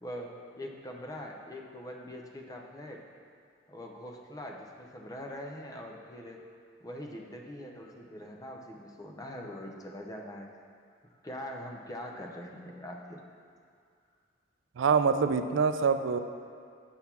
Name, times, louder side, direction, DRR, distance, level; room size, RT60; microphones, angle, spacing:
voice 1, 0.0-3.0 3.7-6.4 6.8-10.5 11.2-13.2, left 1 dB, 20° left, 1 dB, 0.6 m, -43 dB
voice 2, 14.8-16.2, right 5 dB, 75° right, 9 dB, 0.4 m, -25 dB
8.1 x 4.0 x 5.8 m, 2.3 s
head